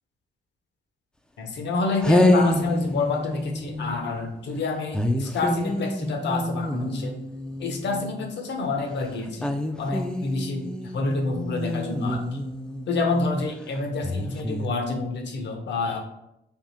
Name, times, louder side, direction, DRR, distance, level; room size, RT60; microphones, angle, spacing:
voice 1, 1.4-7.2 7.6-12.4 12.9-16.0, left 3 dB, 60° left, 4 dB, 0.8 m, -28 dB
sound 1, 1.6-1.7 2.0-4.2 4.9-8.3 9.4-13.2 14.0-14.7, left 1 dB, 5° left, 0.3 m, -27 dB
3.5 x 2.4 x 4.1 m, 0.85 s
cardioid pair, 90°, 20 cm